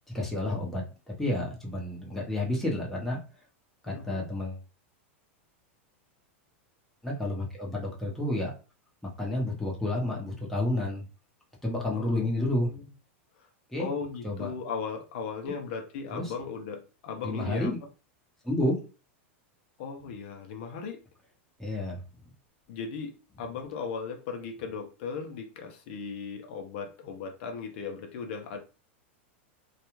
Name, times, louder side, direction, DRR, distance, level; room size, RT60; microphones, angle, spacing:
voice 1, 0.1-0.8 1.2-3.2 3.8-4.6 7.0-8.5 9.2-11.1 11.6-12.7 13.7-13.9 14.2-14.5 16.1-16.3 17.2-17.8 18.4-18.8 21.6-22.0, left 1 dB, 5° left, 0.8 m, -30 dB
voice 2, 3.9-4.3 11.9-12.3 12.7-12.8 13.8-17.7 19.8-21.0 22.7-28.6, left 5 dB, 60° left, 0.6 m, -37 dB
2.3 x 2.3 x 3.0 m
supercardioid pair, 140°, 7 cm